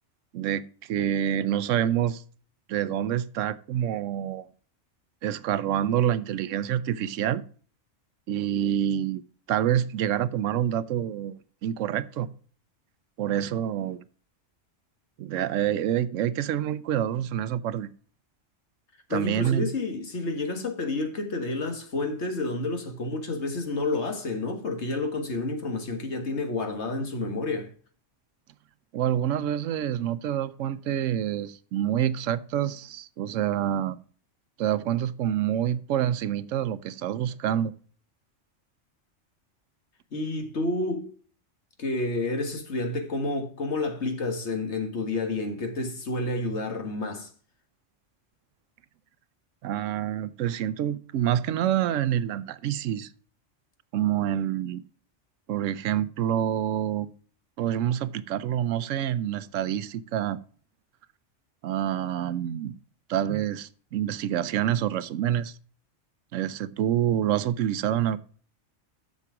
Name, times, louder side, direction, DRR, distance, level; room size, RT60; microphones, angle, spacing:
voice 1, 0.3-2.2 2.7-4.5 5.2-7.4 8.3-9.2 9.5-11.3 11.6-12.3 13.2-14.0 15.2-17.9 19.1-19.7 28.9-34.0 34.6-37.7 49.6-53.1 53.9-54.8 55.5-57.1 57.6-60.4 61.6-62.8 63.1-65.5 66.3-68.2, right 10 dB, 85° right, 1.0 m, -27 dB
voice 2, 19.1-27.7 40.1-41.1 41.8-47.3, left 2 dB, 65° left, 1.8 m, -30 dB
7.3 x 6.9 x 4.8 m
omnidirectional pair, 1.3 m